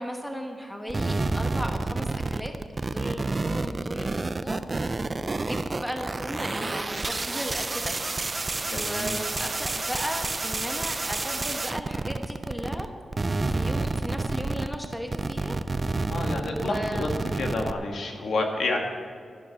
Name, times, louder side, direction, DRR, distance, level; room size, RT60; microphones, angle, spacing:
voice 1, 0.0-2.5 2.8-7.9 8.2-8.4 8.7-12.9 13.5-15.6 16.5-17.1, equal, 5° left, 3 dB, 1.1 m, -36 dB
sound 1, 0.9-12.9 13.1-17.7, right 3 dB, 25° right, 0.4 m, -29 dB
voice 2, 8.7-9.1 16.1-17.1 17.4-18.8, left 2 dB, 65° left, 2 dB, 1.9 m, -29 dB
12.5 x 11.5 x 6.0 m, 2.1 s
wide cardioid pair, 175°, 0 cm